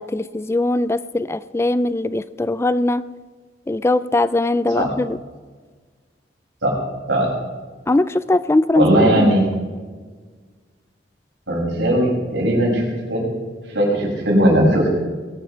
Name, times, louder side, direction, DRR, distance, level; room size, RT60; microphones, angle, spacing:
voice 1, 0.0-3.0 3.7-5.2 7.9-8.9 9.1-9.3, left 2 dB, 15° left, 16 dB, 0.3 m, -20 dB
voice 2, 8.8-9.5 11.5-13.3 13.7-14.9, right 1 dB, 90° right, -2 dB, 6.0 m, -18 dB
21.5 x 9.6 x 5.7 m, 1.5 s
head